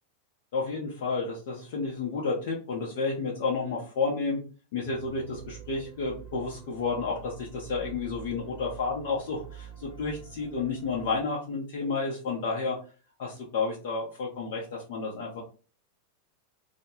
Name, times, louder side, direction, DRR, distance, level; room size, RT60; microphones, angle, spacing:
voice 1, 0.5-4.4 4.7-12.8 13.2-15.4, left 4 dB, 55° left, -3 dB, 0.6 m, -31 dB
sound 1, 4.8-11.2, right 9 dB, 40° right, 0.7 m, -46 dB
2.1 x 2.0 x 3.0 m, 0.36 s
figure-of-eight pair, 90°, 0 cm